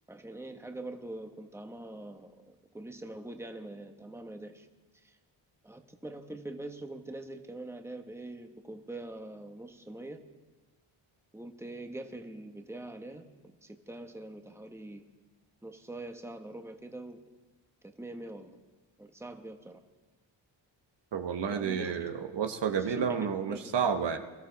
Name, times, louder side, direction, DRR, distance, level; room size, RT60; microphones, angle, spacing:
voice 1, 0.1-4.7 5.0-5.2 5.6-10.2 11.3-15.0 15.6-17.2 17.8-18.6 19.0-19.8 21.5-22.0 22.7-24.1, right 2 dB, 5° right, 5 dB, 1.3 m, -44 dB
voice 2, 21.1-24.2, right 7 dB, 60° right, 6 dB, 1.1 m, -30 dB
22.5 x 13.0 x 4.1 m, 1.2 s
cardioid pair, 60°, 49 cm